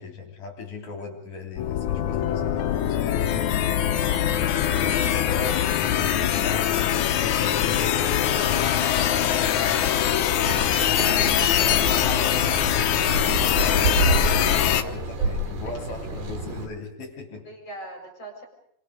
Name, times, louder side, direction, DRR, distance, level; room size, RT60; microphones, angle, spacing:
voice 1, 0.0-3.5 4.0-5.7 6.2-9.3 11.4-11.9 13.6-17.5, left 4 dB, 50° left, 1 dB, 4.7 m, -39 dB
sound 1, 1.6-14.8, left 10 dB, 70° left, 1.9 m, -22 dB
voice 2, 9.6-10.6 11.7-13.9 14.2-15.7 17.4-18.5, equal, 35° left, 2 dB, 5.4 m, -42 dB
sound 2, 10.4-16.7, right 3 dB, 65° right, 5.0 m, -29 dB
29.0 x 25.0 x 5.2 m, 0.71 s
omnidirectional pair, 5.1 m